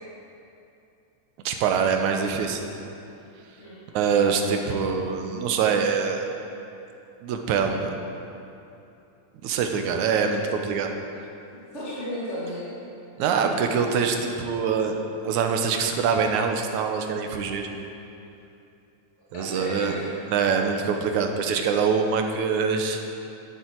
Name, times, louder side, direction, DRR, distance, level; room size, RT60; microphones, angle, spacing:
voice 1, 1.5-2.6 3.9-6.3 7.2-7.9 9.4-10.9 13.2-17.7 19.3-19.9 20.3-23.0, right 6 dB, 85° right, 4 dB, 2.3 m, -24 dB
voice 2, 4.2-4.7 11.5-12.7 19.3-20.1, equal, 25° left, -9 dB, 2.1 m, -34 dB
12.0 x 11.0 x 4.6 m, 2.7 s
omnidirectional pair, 3.4 m